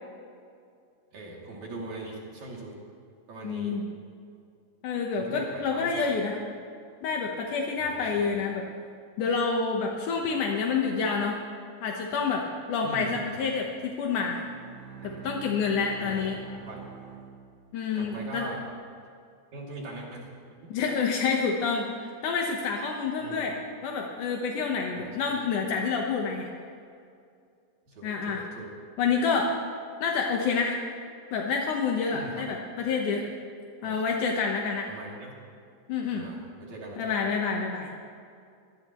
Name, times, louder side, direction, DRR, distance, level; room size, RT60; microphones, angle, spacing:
voice 1, 1.1-2.8 3.3-3.8 5.2-6.1 7.8-8.3 12.8-13.2 15.0-15.4 16.0-16.3 16.7-16.9 17.9-18.6 19.5-20.3 23.2-23.5 24.9-25.4 27.9-28.8 32.1-32.5 33.8-34.0 34.9-35.3 36.1-37.1, right 2 dB, 45° right, -3 dB, 3.6 m, -41 dB
voice 2, 3.4-3.9 4.8-6.4 7.0-8.7 9.2-11.4 11.8-14.4 15.0-16.4 17.7-18.5 20.7-26.5 28.0-28.4 29.0-29.5 30.0-30.8 31.3-33.2 33.8-34.9 35.9-36.3 37.0-37.9, left 5 dB, 75° left, 0 dB, 1.9 m, -28 dB
Bowed string instrument, 14.1-18.1, right 6 dB, 60° right, 2.0 m, -45 dB
25.0 x 18.5 x 3.1 m, 2.3 s
omnidirectional pair, 5.2 m